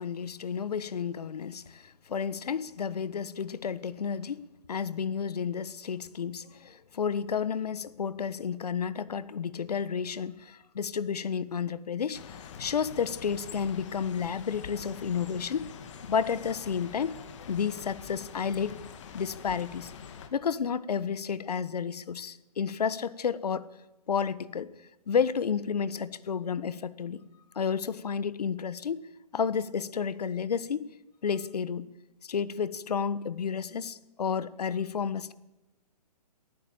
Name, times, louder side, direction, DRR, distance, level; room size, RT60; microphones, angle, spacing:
voice 1, 0.0-15.7 16.0-17.2 17.5-18.7 19.1-19.9 20.3-23.7 24.1-24.7 25.1-27.2 27.5-30.9 31.2-31.9 32.2-35.3, left 7 dB, 70° left, 1.4 m, -31 dB
sound 1, 12.1-20.3, left 7 dB, 45° left, 2.4 m, -45 dB
23.0 x 15.0 x 8.8 m
hypercardioid pair, 150°, 21 cm